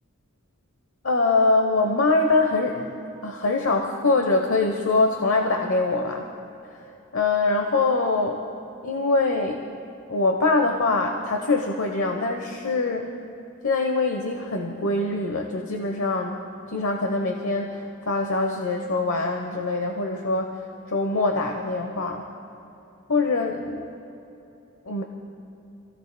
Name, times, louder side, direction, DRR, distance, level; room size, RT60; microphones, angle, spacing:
voice 1, 1.0-6.2 6.7-6.8 7.1-8.5 8.8-9.7 10.1-13.1 13.6-16.4 16.7-20.5 20.9-22.3 23.1-23.9 24.9-25.0, left 3 dB, 75° left, 3 dB, 1.0 m, -23 dB
29.5 x 16.0 x 2.3 m, 2.8 s
head